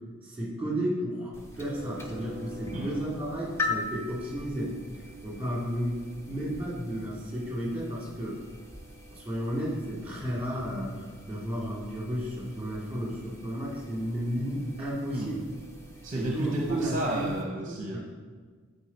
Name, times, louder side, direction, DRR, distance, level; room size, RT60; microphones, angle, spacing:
voice 1, 0.2-1.3 1.6-6.0 6.3-8.4 9.1-15.5 16.1-17.3 17.7-18.0, equal, 5° right, -6 dB, 2.3 m, -33 dB
sound 1, 1.3-17.4, left 2 dB, 10° left, 0.7 m, -42 dB
voice 2, 16.0-18.0, right 1 dB, 35° right, 0 dB, 0.7 m, -32 dB
9.9 x 4.6 x 4.2 m, 1.5 s
head